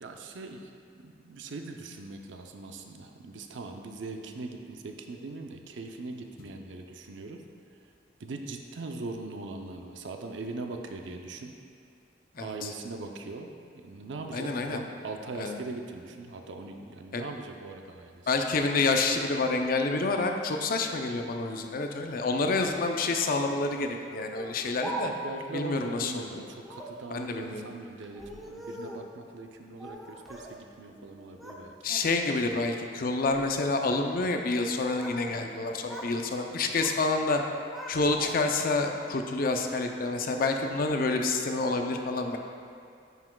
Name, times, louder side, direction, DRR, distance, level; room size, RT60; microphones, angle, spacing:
voice 1, 0.0-7.4 7.7-7.9 8.2-11.5 12.4-18.3 25.0-31.9 36.5-36.8, right 3 dB, 85° right, 4 dB, 0.5 m, -41 dB
voice 2, 14.3-14.8 15.4-15.6 17.1-17.2 18.3-25.1 25.5-26.4 27.1-27.6 31.8-37.4 37.9-42.4, left 3 dB, 50° left, 4 dB, 0.5 m, -28 dB
Speech, 24.3-25.4 26.6-27.0 28.0-29.1 29.8-30.6 30.9-31.6 32.0-32.4 33.1-33.4 34.5-35.2 35.5-36.2 36.4-37.0 37.4-38.6, right 1 dB, ahead, 0.6 m, -42 dB
9.2 x 5.9 x 2.3 m, 2.4 s
head